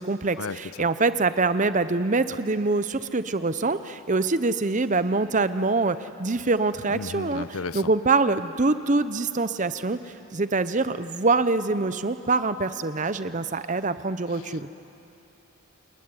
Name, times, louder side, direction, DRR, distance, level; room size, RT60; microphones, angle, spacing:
voice 1, 0.0-14.7, right 3 dB, 35° right, 13 dB, 0.7 m, -25 dB
voice 2, 6.9-7.8, left 4 dB, 75° left, 16 dB, 0.7 m, -33 dB
29.0 x 20.0 x 9.8 m, 2.9 s
head